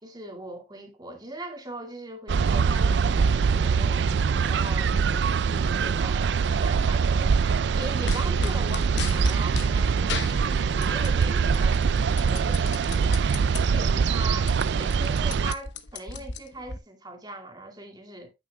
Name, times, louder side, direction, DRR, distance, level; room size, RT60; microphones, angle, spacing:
voice 1, 0.0-12.9 13.5-18.3, right 1 dB, 20° right, 2.1 m, -40 dB
sound 1, 2.3-15.5, right 5 dB, 65° right, 0.4 m, -23 dB
sound 2, 8.1-9.7 10.1-11.2 11.5-13.6 14.0-14.1 14.4-16.8, left 4 dB, 70° left, 1.1 m, -34 dB
9.8 x 8.8 x 2.3 m
head